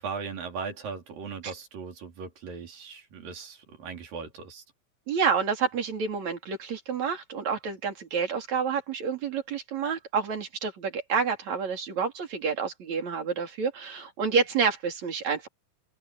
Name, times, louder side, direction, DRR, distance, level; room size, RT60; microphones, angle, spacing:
voice 1, 0.0-4.6, right 5 dB, 75° right, 5.3 m, -38 dB
voice 2, 5.1-15.5, right 6 dB, 55° right, 4.8 m, -29 dB
omnidirectional pair, 4.0 m